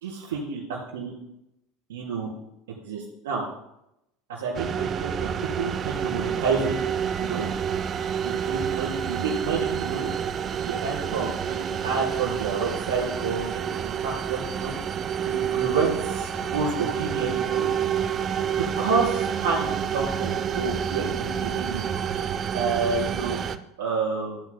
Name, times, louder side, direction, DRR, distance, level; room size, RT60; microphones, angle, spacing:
voice 1, 0.0-1.1 1.9-2.3 2.8-3.4 4.3-6.7 7.2-7.5 8.2-10.1 10.5-14.7 15.3-17.7 18.6-22.2 22.5-23.4 23.8-24.4, right 4 dB, 75° right, -2 dB, 3.6 m, -29 dB
sound 1, 4.5-23.6, right 8 dB, 40° right, 0.6 m, -28 dB
16.0 x 8.0 x 2.2 m, 0.84 s
hypercardioid pair, 75°, 0 cm